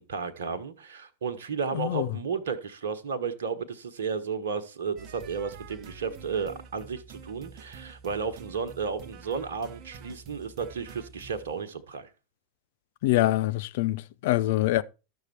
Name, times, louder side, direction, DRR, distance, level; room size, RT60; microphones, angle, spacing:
voice 1, 0.0-12.1, right 6 dB, 60° right, 1.2 m, -33 dB
voice 2, 1.7-2.1 13.0-14.8, left 16 dB, 50° left, 0.6 m, -25 dB
sound 1, 5.0-11.6, right 5 dB, 35° right, 0.9 m, -47 dB
12.5 x 6.5 x 4.3 m
figure-of-eight pair, 90°, 0 cm